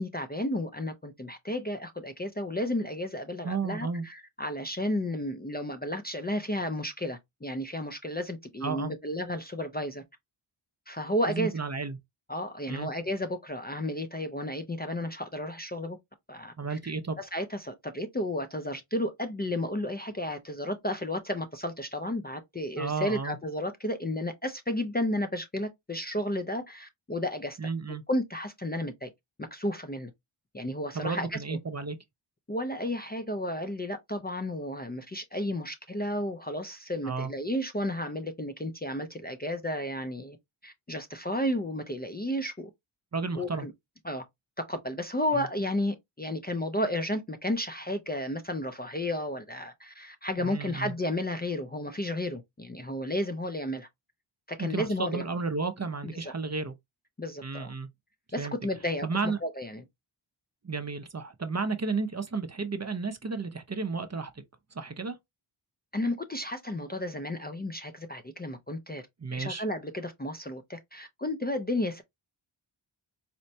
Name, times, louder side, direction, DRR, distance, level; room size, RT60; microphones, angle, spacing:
voice 1, 0.0-10.0 10.9-11.5 12.3-16.0 16.3-27.6 27.9-29.1 29.4-30.1 30.5-31.4 32.5-40.4 40.6-42.7 43.4-43.7 44.0-44.2 44.7-53.9 54.5-55.2 56.2-56.3 57.2-57.7 58.3-59.1 59.4-59.8 65.9-69.0 69.3-72.0, left 1 dB, 20° left, 0.4 m, -32 dB
voice 2, 3.4-4.1 8.6-8.9 11.3-12.0 12.7-12.9 16.6-17.2 22.8-23.4 27.6-28.0 30.9-32.0 37.0-37.3 43.1-43.7 45.3-45.5 50.4-50.9 54.6-56.7 57.4-57.9 58.4-58.6 59.0-59.4 60.6-64.3 64.7-65.2 69.2-69.6, right 4 dB, 35° right, 0.6 m, -32 dB
4.3 x 2.1 x 2.7 m
wide cardioid pair, 55°, 50 cm